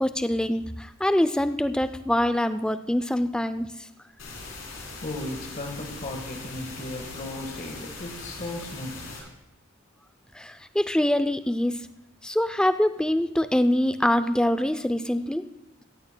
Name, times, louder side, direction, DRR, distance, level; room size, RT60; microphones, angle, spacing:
voice 1, 0.0-3.7 10.3-11.9 12.2-15.4, left 1 dB, 5° left, 11 dB, 0.4 m, -24 dB
sound 1, 4.2-9.2, left 3 dB, 80° left, 3.7 m, -40 dB
voice 2, 4.4-9.1, left 1 dB, 40° left, 2 dB, 1.4 m, -36 dB
16.0 x 15.5 x 2.2 m, 0.90 s
head